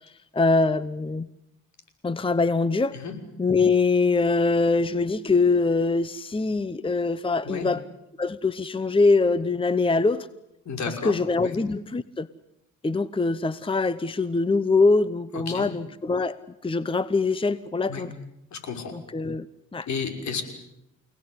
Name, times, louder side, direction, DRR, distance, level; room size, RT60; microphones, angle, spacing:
voice 1, 0.3-1.3 2.0-3.0 3.4-7.8 8.2-10.3 11.0-12.3 12.8-18.1 19.1-19.5 19.7-19.9, left 3 dB, 15° left, 16 dB, 0.9 m, -23 dB
voice 2, 10.6-11.6 15.3-15.7 17.9-18.0 18.5-18.9 19.9-20.4, left 5 dB, 65° left, 6 dB, 6.1 m, -32 dB
30.0 x 18.5 x 9.9 m, 0.84 s
cardioid pair, 90°, 30 cm